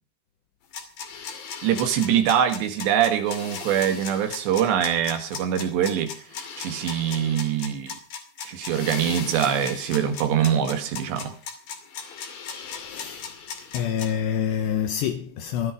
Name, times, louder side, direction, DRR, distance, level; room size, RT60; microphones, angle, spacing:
sound 1, 0.7-14.1, left 6 dB, 55° left, 3.9 m, -37 dB
voice 1, 1.6-6.2 6.6-8.0 8.5-11.4, right 9 dB, 75° right, 3.6 m, -23 dB
voice 2, 12.9-13.2 13.7-15.7, left 8 dB, 75° left, 3.1 m, -26 dB
20.0 x 12.5 x 5.0 m
omnidirectional pair, 5.3 m